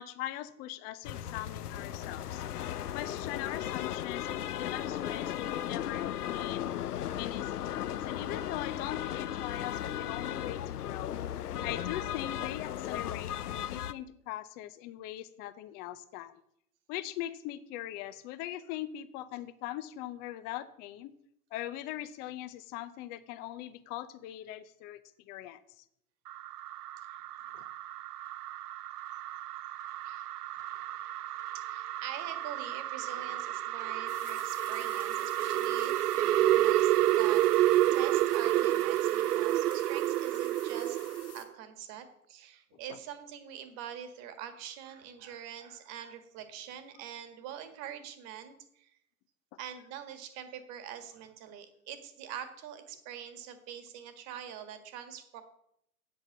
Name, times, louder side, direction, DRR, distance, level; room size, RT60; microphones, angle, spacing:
voice 1, 0.0-2.4 2.9-6.7 7.2-11.2 11.6-16.3 16.9-21.1 21.5-25.0 25.3-25.8 27.5-27.7, left 13 dB, 20° left, 14 dB, 0.5 m, -41 dB
sound 1, 1.0-13.9, left 11 dB, 80° left, 0.6 m, -36 dB
sound 2, 26.3-41.4, right 14 dB, 80° right, 0.5 m, -30 dB
voice 2, 31.5-41.0 41.3-48.9 49.6-55.4, right 9 dB, 35° right, 9 dB, 1.7 m, -45 dB
sound 3, 34.1-41.4, left 10 dB, 65° left, 2.1 m, -51 dB
8.4 x 7.5 x 7.3 m, 0.74 s
hypercardioid pair, 120°, 46 cm